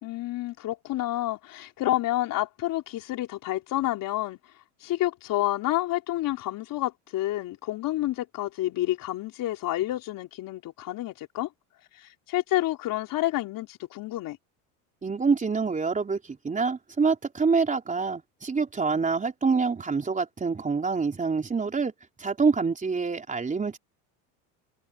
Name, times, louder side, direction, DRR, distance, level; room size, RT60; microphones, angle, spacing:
voice 1, 0.0-4.4 4.8-11.5 11.9-14.4, left 15 dB, 55° left, 3.8 m, -29 dB
voice 2, 15.0-21.9 22.2-23.8, right 4 dB, 20° right, 3.7 m, -26 dB
supercardioid pair, 115°, 41 cm